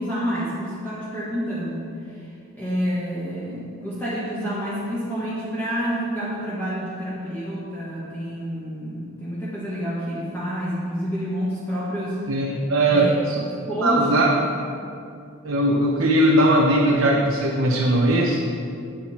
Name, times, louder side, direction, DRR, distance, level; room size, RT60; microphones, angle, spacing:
voice 1, 0.0-1.8 2.6-12.2 12.5-12.6 12.9-13.2 13.7-14.1, equal, 10° left, -9 dB, 1.6 m, -28 dB
voice 2, 12.3-13.4 13.8-14.3 15.4-18.6, right 1 dB, 65° right, -2 dB, 0.9 m, -19 dB
10.0 x 9.1 x 4.4 m, 2.4 s
head